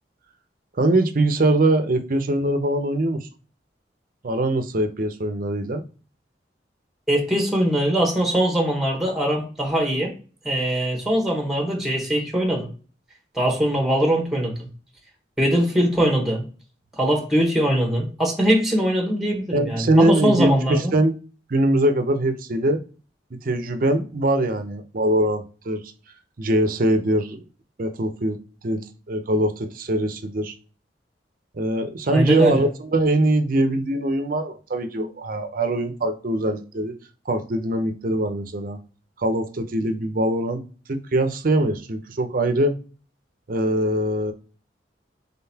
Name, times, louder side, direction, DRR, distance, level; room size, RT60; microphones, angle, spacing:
voice 1, 0.8-3.3 4.2-5.8 19.5-21.1 21.5-22.8 23.3-25.9 26.4-27.4 27.8-28.4 28.6-30.5 31.5-37.0 37.3-38.8 39.2-40.6 40.9-42.8 43.5-44.3, right 1 dB, 50° right, 0.6 m, -22 dB
voice 2, 7.1-10.1 10.4-12.7 13.3-14.7 15.4-16.4 17.0-20.9 32.1-32.6, equal, ahead, 1.0 m, -21 dB
3.9 x 3.6 x 2.7 m
head